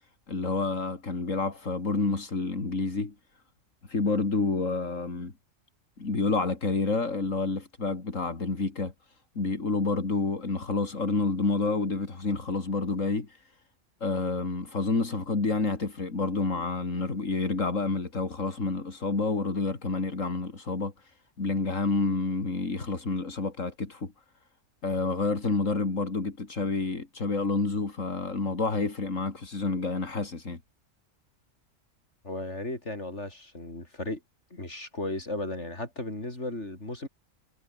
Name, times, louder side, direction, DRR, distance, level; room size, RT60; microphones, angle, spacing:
voice 1, 0.3-3.1 3.8-5.3 6.0-8.9 9.3-13.5 14.0-24.1 24.8-30.6, left 3 dB, 80° left, 3.4 m, -29 dB
voice 2, 32.2-34.2 34.5-37.1, left 2 dB, 60° left, 6.3 m, -35 dB
omnidirectional pair, 1.3 m